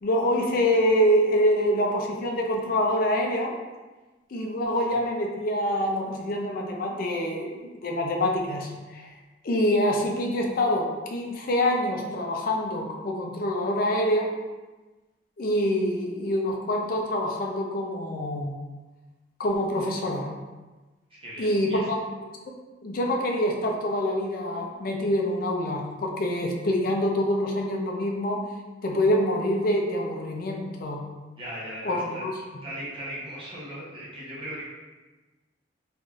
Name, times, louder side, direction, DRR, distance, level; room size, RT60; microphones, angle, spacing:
voice 1, 0.0-3.6 4.3-9.0 9.4-14.3 15.4-18.5 19.4-20.3 21.4-22.0 22.8-28.5 28.8-31.0 31.8-32.3, equal, 50° left, 1 dB, 0.4 m, -25 dB
voice 2, 21.1-21.9 31.3-32.3 32.6-34.6, right 1 dB, 30° right, -8 dB, 0.8 m, -38 dB
3.4 x 2.5 x 2.3 m, 1.2 s
head